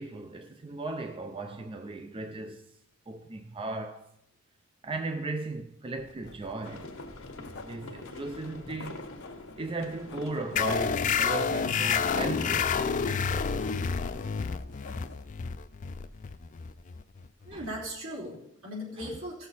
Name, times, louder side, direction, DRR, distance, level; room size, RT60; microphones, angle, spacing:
voice 1, 0.0-2.6 3.1-4.1 4.8-6.9 7.6-9.2 9.6-12.8 13.0-13.7 17.5-17.6 19.0-19.1, right 3 dB, 25° right, 0.5 m, -37 dB
Writing, 6.0-15.3, left 2 dB, 55° left, 1.0 m, -49 dB
sound 1, 6.6-12.5, left 2 dB, 80° left, 1.3 m, -45 dB
sound 2, 10.6-17.7, left 6 dB, 40° left, 0.4 m, -29 dB
voice 2, 17.4-19.5, equal, 75° right, 3.3 m, -38 dB
15.5 x 6.5 x 4.1 m
head